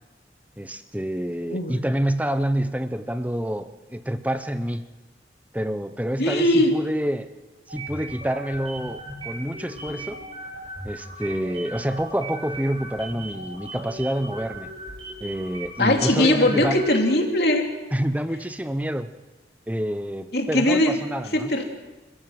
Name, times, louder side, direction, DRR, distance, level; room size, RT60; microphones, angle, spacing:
voice 1, 0.6-4.8 5.5-7.3 7.7-10.2 10.8-14.7 15.2-16.8 17.9-19.1 19.7-21.5, equal, 10° right, 11 dB, 0.9 m, -27 dB
voice 2, 1.4-1.8 6.2-6.7 15.8-17.7 20.3-20.9 21.3-21.6, left 1 dB, 60° left, 2 dB, 3.0 m, -20 dB
sound 1, 7.7-17.2, right 2 dB, 30° right, 7.8 m, -38 dB
27.0 x 15.5 x 7.7 m, 1.2 s
head